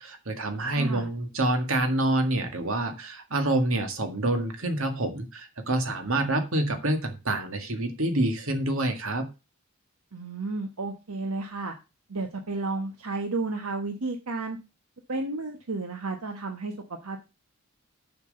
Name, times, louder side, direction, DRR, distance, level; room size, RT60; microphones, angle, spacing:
voice 1, 0.0-9.3, right 1 dB, 70° right, 7 dB, 1.9 m, -27 dB
voice 2, 0.7-1.1 10.1-11.7 12.1-14.6 15.1-17.2, right 3 dB, 85° right, 4 dB, 1.1 m, -32 dB
7.0 x 6.1 x 6.7 m, 0.29 s
head